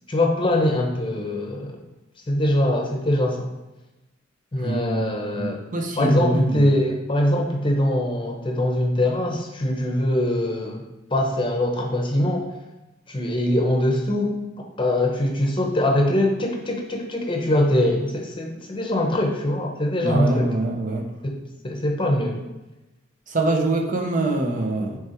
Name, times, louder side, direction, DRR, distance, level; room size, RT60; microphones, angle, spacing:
voice 1, 0.1-1.8 2.3-3.5 4.5-5.6 6.0-10.8 11.1-12.5 13.1-14.3 14.8-20.5 21.2-21.4 21.6-22.4, left 1 dB, 25° left, 1 dB, 0.8 m, -22 dB
voice 2, 4.6-5.1 5.3-6.7 20.0-21.1 23.3-25.0, right 2 dB, 45° right, 2 dB, 0.8 m, -24 dB
6.4 x 3.5 x 4.4 m, 1.0 s
head